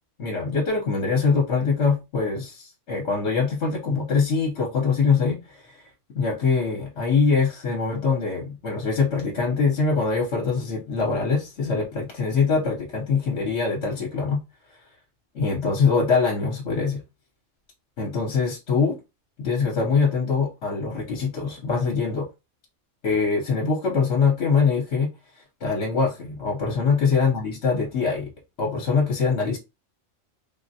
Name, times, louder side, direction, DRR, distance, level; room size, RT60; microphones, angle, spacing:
voice 1, 0.2-5.8 6.1-14.4 15.3-17.0 18.0-19.0 19.4-22.3 23.0-25.1 25.6-28.3 28.6-29.6, left 5 dB, 65° left, 1.0 m, -23 dB
3.4 x 2.1 x 2.6 m
omnidirectional pair, 1.3 m